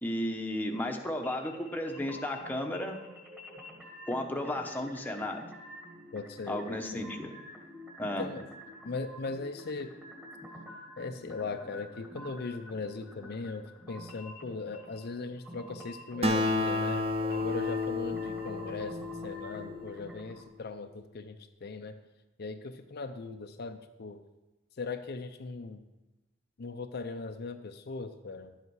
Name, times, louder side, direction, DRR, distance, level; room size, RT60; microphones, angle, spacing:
voice 1, 0.0-3.0 4.1-5.4 6.5-7.3 8.0-8.3, left 1 dB, 10° left, 2 dB, 0.9 m, -34 dB
sound 1, 1.2-20.4, equal, 10° right, 1.7 m, -48 dB
voice 2, 6.1-7.1 8.2-8.5 8.8-9.9 11.0-19.0 19.2-22.0 22.4-24.2 24.8-25.8 26.6-28.5, left 3 dB, 55° left, 7 dB, 0.5 m, -39 dB
Acoustic guitar, 16.2-19.9, left 2 dB, 30° right, 0.8 m, -31 dB
11.0 x 8.0 x 4.7 m, 1.1 s
head